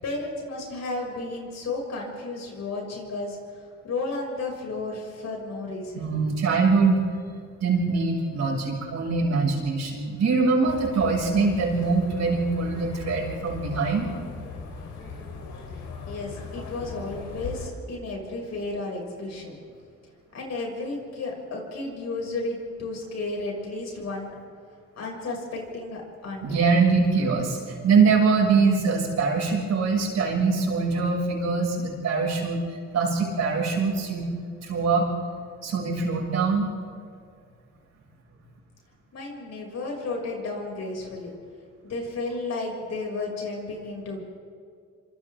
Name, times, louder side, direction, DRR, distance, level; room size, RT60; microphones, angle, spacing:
voice 1, 0.0-6.2 16.1-19.6 20.3-24.3 24.9-26.6 39.1-41.3 41.8-44.2, left 3 dB, 60° left, -1 dB, 6.6 m, -33 dB
voice 2, 6.0-7.0 7.6-14.1 26.4-32.6 32.9-34.3 34.6-35.1 35.6-36.7, right 4 dB, 60° right, -2 dB, 6.4 m, -23 dB
sound 1, 10.7-17.7, left 4 dB, 80° left, 3.8 m, -38 dB
27.0 x 26.0 x 3.7 m, 2.2 s
cardioid pair, 90°, 30 cm